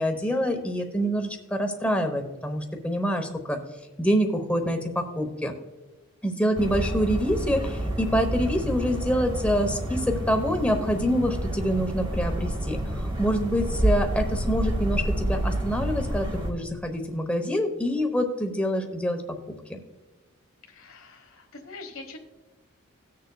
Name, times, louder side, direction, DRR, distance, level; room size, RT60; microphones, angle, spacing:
voice 1, 0.0-3.6 4.0-5.5 6.2-19.2 19.7-19.8, equal, 5° left, 4 dB, 0.9 m, -26 dB
sound 1, 6.6-16.5, right 1 dB, 20° right, 1.1 m, -29 dB
voice 2, 20.7-22.2, left 3 dB, 65° left, 2 dB, 1.3 m, -43 dB
18.5 x 6.6 x 2.3 m, 1.1 s
head